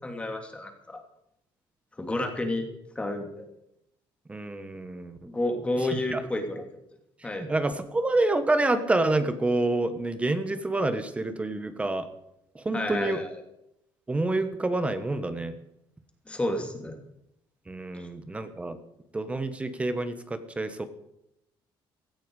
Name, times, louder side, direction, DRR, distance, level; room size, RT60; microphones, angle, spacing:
voice 1, 0.0-1.0 2.0-2.7 2.9-3.5 5.2-6.6 7.2-7.5 12.7-13.3 16.3-17.0 17.9-18.0, left 1 dB, 15° left, 4 dB, 2.8 m, -30 dB
voice 2, 4.3-5.2 5.7-6.2 7.3-12.1 12.5-13.2 14.1-15.5 17.7-18.8 19.1-20.8, right 2 dB, 15° right, 10 dB, 1.2 m, -28 dB
17.0 x 14.5 x 4.9 m, 0.79 s
cardioid pair, 145°, 9 cm